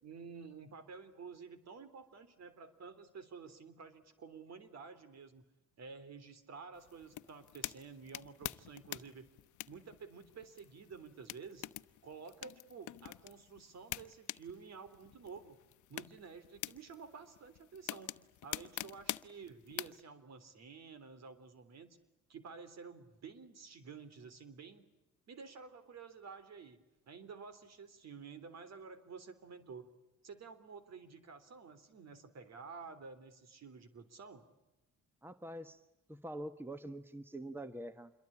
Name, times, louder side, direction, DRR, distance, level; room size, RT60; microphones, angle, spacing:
voice 1, 0.0-5.4 5.8-9.3 9.7-11.7 12.0-15.6 15.9-18.1 18.4-22.0 22.3-24.9 25.3-26.8 27.1-29.9 30.2-34.5, right 5 dB, 60° right, 13 dB, 3.5 m, -51 dB
sound 1, 6.7-20.0, left 14 dB, 75° left, 0.9 m, -47 dB
voice 2, 35.2-35.8 36.1-38.1, right 1 dB, 5° right, 11 dB, 1.4 m, -45 dB
27.0 x 22.5 x 8.7 m, 0.98 s
cardioid pair, 90°, 30 cm